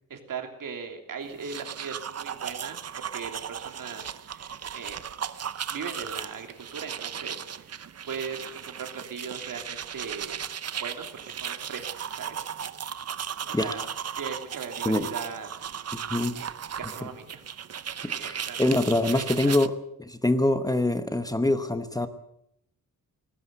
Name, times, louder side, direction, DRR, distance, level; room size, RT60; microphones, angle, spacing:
voice 1, 0.1-5.0 5.7-10.4 10.8-12.5 13.5-13.9 14.1-15.5 16.4-16.5 16.8-17.4 18.0-18.7 19.1-19.5, right 6 dB, 75° right, 5 dB, 3.2 m, -39 dB
sound 1, 1.3-19.7, right 8 dB, 50° right, 0.8 m, -36 dB
voice 2, 15.9-16.4 18.0-19.7 20.0-22.1, left 1 dB, 10° left, 10 dB, 1.0 m, -25 dB
19.0 x 17.5 x 8.0 m, 0.74 s
wide cardioid pair, 175°, 33 cm